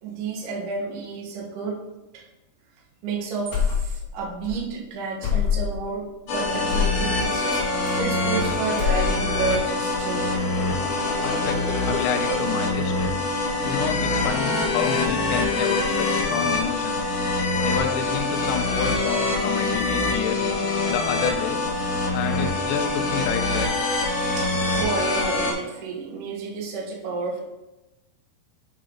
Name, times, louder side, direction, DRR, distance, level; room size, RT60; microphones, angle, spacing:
voice 1, 0.0-1.9 2.1-2.3 3.0-10.4 24.4-27.4, right 4 dB, 80° right, -2 dB, 1.8 m, -31 dB
sound 1, 3.5-4.2 4.4-4.6 5.2-5.8 6.7-7.0 7.9-8.4 8.7-9.4, left 8 dB, 45° left, 2.8 m, -24 dB
sound 2, 6.3-25.5, left 2 dB, 65° left, 3.3 m, -25 dB
voice 2, 11.2-11.6 11.8-13.1 13.6-17.1 17.6-20.6 20.9-21.7 22.1-23.9, left 7 dB, 85° left, 3 dB, 2.6 m, -29 dB
9.0 x 3.9 x 3.8 m, 1.0 s
omnidirectional pair, 5.9 m